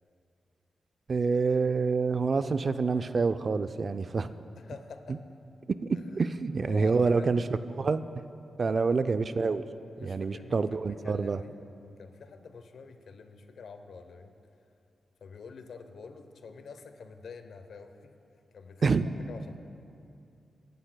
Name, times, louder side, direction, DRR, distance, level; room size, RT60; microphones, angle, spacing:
voice 1, 1.1-4.3 5.7-7.4 7.8-8.0 8.6-9.6 10.0-11.4 18.8-19.1, right 4 dB, 45° right, 11 dB, 0.4 m, -27 dB
voice 2, 4.6-5.2 5.9-6.3 6.7-7.3 8.6-8.8 10.0-11.6 12.0-14.3 15.2-18.1 18.5-19.0 19.3-19.6, left 5 dB, 75° left, 7 dB, 0.8 m, -47 dB
22.5 x 11.5 x 2.2 m, 2.6 s
cardioid pair, 95°, 0 cm